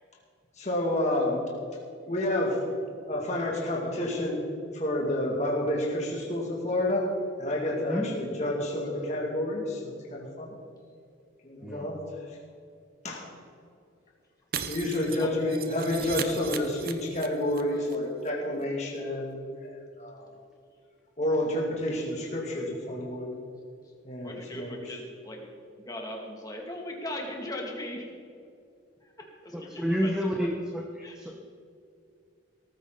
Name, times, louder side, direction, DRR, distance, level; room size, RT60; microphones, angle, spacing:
voice 1, 0.6-1.4 2.1-2.6 3.1-4.5 4.7-10.5 11.4-12.0 13.0-13.2 14.7-20.3 21.2-23.4 24.0-25.0, left 1 dB, 35° left, -2 dB, 2.5 m, -29 dB
Shatter, 14.5-17.6 17.9-18.0 18.3-18.4, right 7 dB, 50° right, 0.9 m, -37 dB
voice 2, 24.2-25.5 25.9-28.1 29.0-30.5 31.0-31.2, left 1 dB, 20° left, 0 dB, 2.5 m, -39 dB
voice 3, 29.5-31.4, equal, 5° right, 1 dB, 1.0 m, -30 dB
18.5 x 14.0 x 4.1 m, 2.4 s
head